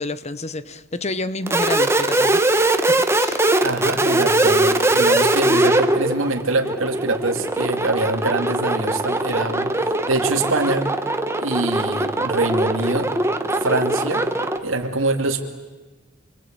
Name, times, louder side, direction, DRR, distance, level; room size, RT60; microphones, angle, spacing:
voice 1, 0.0-2.4 2.9-3.5, left 2 dB, 35° left, 14 dB, 1.0 m, -29 dB
sound 1, 1.5-14.6, right 2 dB, 15° right, 1.3 m, -20 dB
voice 2, 3.6-10.9 11.4-13.1 13.6-14.3 14.6-15.4, right 2 dB, 85° right, 2 dB, 2.5 m, -24 dB
28.5 x 23.5 x 8.9 m, 1.2 s
head